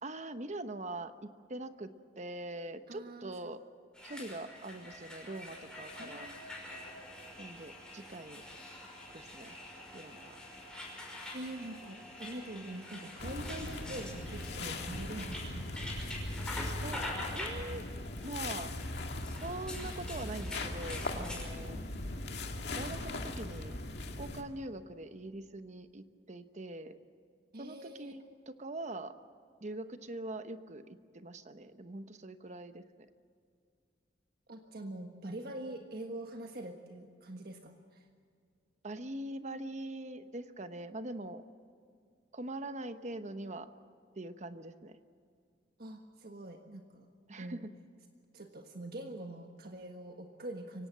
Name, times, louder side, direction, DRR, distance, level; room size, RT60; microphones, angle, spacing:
voice 1, 0.0-1.9 2.2-3.6 4.0-6.3 7.4-8.4 9.1-9.6 9.9-10.4 16.6-17.0 17.3-17.8 18.2-18.7 19.4-21.8 22.8-23.8 24.2-27.0 27.6-29.1 29.6-33.1 38.8-41.4 42.3-43.7 44.2-45.0 47.3-47.7, right 2 dB, 45° right, 10 dB, 1.1 m, -43 dB
voice 2, 2.9-3.3 6.0-6.4 10.5-10.6 11.3-16.0 21.7-22.3 27.5-28.1 34.5-38.1 45.8-47.1 47.4-47.6 48.3-50.9, right 1 dB, 60° right, 3 dB, 1.5 m, -44 dB
sound 1, 3.9-21.5, left 1 dB, 5° left, 5.6 m, -46 dB
sound 2, 13.2-24.4, left 2 dB, 70° left, 2.0 m, -39 dB
24.0 x 17.5 x 7.6 m, 2.2 s
head